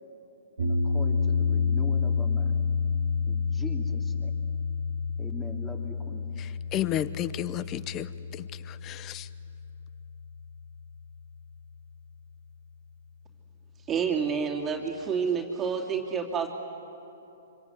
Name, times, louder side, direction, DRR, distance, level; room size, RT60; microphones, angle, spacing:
voice 1, 0.6-2.6 3.2-4.3 5.2-6.2, left 2 dB, 10° left, 3 dB, 2.9 m, -42 dB
sound 1, 0.6-10.8, left 5 dB, 80° right, 2.3 m, -29 dB
voice 2, 6.4-9.3, left 12 dB, 30° left, 17 dB, 0.8 m, -33 dB
voice 3, 13.9-16.5, right 6 dB, 20° right, 1 dB, 2.7 m, -28 dB
25.5 x 25.0 x 8.3 m, 3.0 s
hypercardioid pair, 125°, 0 cm